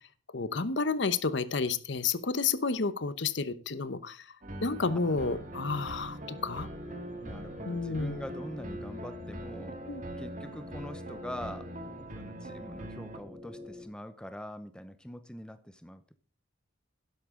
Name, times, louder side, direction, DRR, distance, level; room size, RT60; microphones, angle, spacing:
voice 1, 0.3-4.3 4.6-6.7 7.6-8.2 9.9-10.0, left 4 dB, 60° left, 15 dB, 0.8 m, -31 dB
sound 1, 4.4-13.2, right 2 dB, 40° right, 1.7 m, -43 dB
sound 2, 4.5-13.8, left 2 dB, 25° right, 4.5 m, -46 dB
voice 2, 7.2-9.8 10.2-16.2, equal, 5° left, 11 dB, 0.6 m, -44 dB
12.0 x 10.5 x 3.7 m, 0.37 s
head